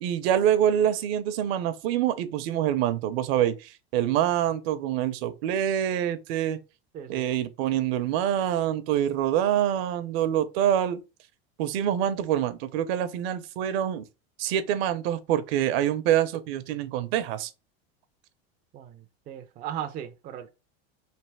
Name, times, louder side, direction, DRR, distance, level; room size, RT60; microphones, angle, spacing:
voice 1, 0.0-6.6 7.1-11.0 11.6-14.0 14.4-17.5, right 10 dB, 65° right, 0.7 m, -26 dB
voice 2, 6.9-7.3 18.7-20.5, right 10 dB, 25° right, 0.4 m, -37 dB
3.4 x 2.9 x 4.5 m
supercardioid pair, 145°, 32 cm